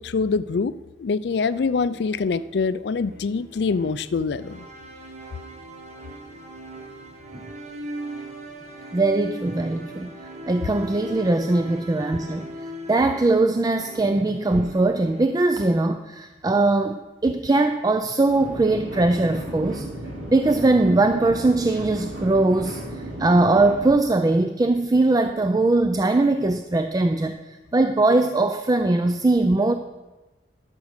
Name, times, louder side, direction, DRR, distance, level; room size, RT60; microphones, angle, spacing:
voice 1, 0.0-4.7, left 4 dB, 65° left, 15 dB, 0.4 m, -25 dB
sound 1, 1.3-15.2, right 1 dB, 40° right, 1.4 m, -39 dB
voice 2, 8.9-10.1 10.5-12.5 12.9-19.9 20.3-22.8 23.2-27.4 27.7-29.7, right 2 dB, 20° right, 8 dB, 0.4 m, -20 dB
sound 2, 18.3-23.9, right 1 dB, 85° right, 3.7 m, -35 dB
11.5 x 6.3 x 6.5 m, 1.1 s
head